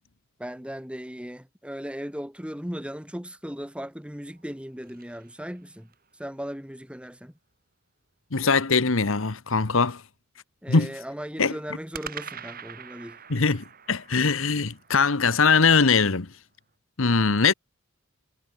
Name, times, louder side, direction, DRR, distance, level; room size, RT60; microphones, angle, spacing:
voice 1, 0.4-5.9 6.2-7.3 10.6-13.2 17.0-17.2, equal, 5° right, 2.5 m, -37 dB
sound 1, 4.2-6.1 11.9-16.2, right 7 dB, 45° right, 6.2 m, -45 dB
voice 2, 8.3-10.0 10.7-10.9 11.4-11.5 13.3-16.3 17.0-17.5, left 4 dB, 65° left, 1.2 m, -21 dB
head